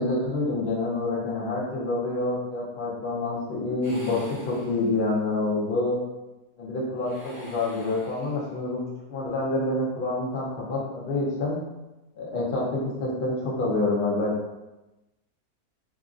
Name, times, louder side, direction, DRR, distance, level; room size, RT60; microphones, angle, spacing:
voice 1, 0.0-6.0 6.6-8.8 9.1-11.6 12.2-14.3, left 2 dB, 50° left, -4 dB, 0.6 m, -27 dB
sound 1, 3.8-5.3 6.9-8.7, equal, 45° right, 0.8 m, -46 dB
3.0 x 2.5 x 2.5 m, 1.0 s
omnidirectional pair, 1.7 m